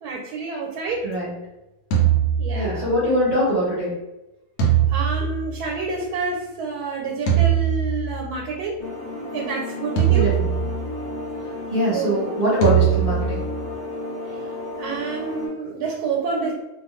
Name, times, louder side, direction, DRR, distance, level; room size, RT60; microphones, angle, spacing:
voice 1, 0.0-1.1 2.4-3.1 4.9-8.8 9.3-10.3 11.9-12.2 14.8-16.5, right 4 dB, 85° right, -1 dB, 1.1 m, -28 dB
voice 2, 1.0-1.3 2.5-3.9 10.1-10.5 11.7-13.4, equal, 30° right, -9 dB, 0.8 m, -22 dB
sound 1, 1.9-3.1 4.6-6.1 7.3-8.5 10.0-11.2 12.6-13.7, right 9 dB, 80° left, 1.1 m, -21 dB
sound 2, 8.8-15.5, left 2 dB, 50° left, 0.4 m, -33 dB
2.5 x 2.3 x 3.0 m, 0.98 s
omnidirectional pair, 1.6 m